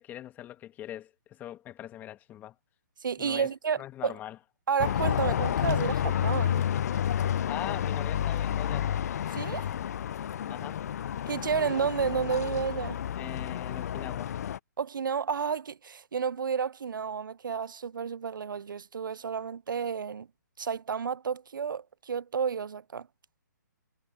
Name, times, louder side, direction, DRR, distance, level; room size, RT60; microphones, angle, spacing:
voice 1, 0.0-2.5 3.2-3.5 3.8-4.4 7.5-8.9 10.5-10.9 13.2-14.3, left 12 dB, 15° left, 1.8 m, -41 dB
voice 2, 3.0-4.1 4.7-6.6 9.3-9.7 11.3-13.0 14.8-20.3 20.6-23.1, right 6 dB, 90° right, 0.4 m, -31 dB
sound 1, 4.8-14.6, left 9 dB, 55° left, 0.4 m, -30 dB
hypercardioid pair, 150°, 10 cm